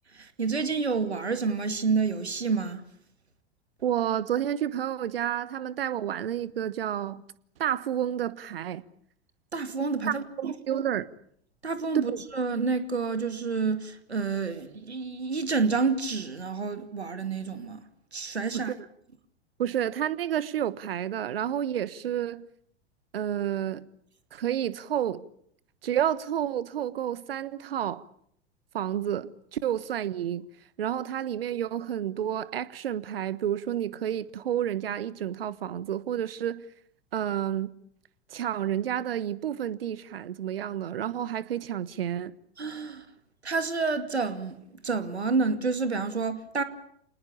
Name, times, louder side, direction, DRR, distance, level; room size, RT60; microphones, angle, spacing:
voice 1, 0.1-2.8 9.5-10.8 11.6-17.8 18.1-18.7 42.6-43.1 43.4-44.6 44.8-46.6, right 4 dB, 80° right, 2.5 m, -29 dB
voice 2, 3.8-7.2 7.6-8.8 10.4-11.1 12.1-12.2 18.5-18.8 19.6-22.5 23.1-23.9 24.3-25.2 25.8-28.1 28.7-30.5 30.8-36.6 37.1-37.7 38.3-42.4, right 10 dB, 60° right, 1.4 m, -30 dB
27.0 x 20.0 x 8.6 m
figure-of-eight pair, 95°, 32 cm